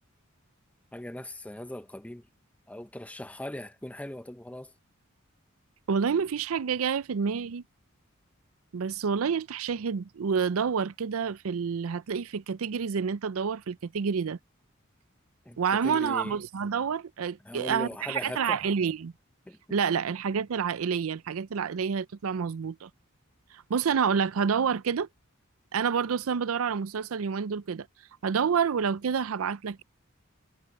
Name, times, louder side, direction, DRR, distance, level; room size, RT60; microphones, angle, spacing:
voice 1, 0.9-2.2 2.7-4.7 15.5-16.4 17.4-18.6 19.5-19.6, left 1 dB, 5° left, 0.6 m, -39 dB
voice 2, 5.9-7.6 8.7-14.4 15.6-19.1 19.7-22.9 23.5-25.1 25.7-27.9 28.2-29.8, right 6 dB, 85° right, 0.5 m, -28 dB
head